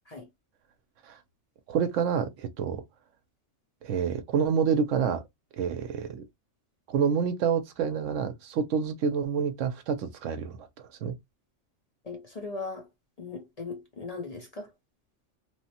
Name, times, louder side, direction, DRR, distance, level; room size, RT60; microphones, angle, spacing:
voice 1, 1.7-2.8 3.8-5.2 5.6-6.3 6.9-10.7 11.0-11.2, right 7 dB, 85° right, 0.9 m, -28 dB
voice 2, 12.0-12.9 13.2-14.7, left 3 dB, 40° left, 0.6 m, -38 dB
3.1 x 2.1 x 2.8 m
omnidirectional pair, 1.3 m